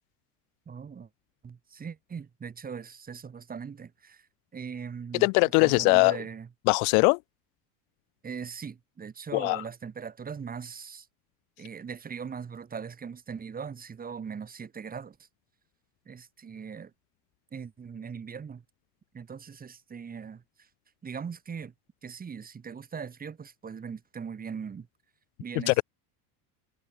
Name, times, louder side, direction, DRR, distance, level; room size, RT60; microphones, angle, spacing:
voice 1, 0.7-1.1 1.4-4.3 4.5-5.3 5.6-6.5 8.2-11.1 11.6-15.2 16.1-16.9 17.5-18.6 19.1-20.7 21.0-21.7 22.0-24.9 25.4-25.8, right 6 dB, 15° right, 6.8 m, -40 dB
voice 2, 5.2-6.2 6.7-7.2 9.3-9.6 25.6-25.8, left 40 dB or more, 60° left, 0.7 m, -21 dB
cardioid pair, 170°, 49 cm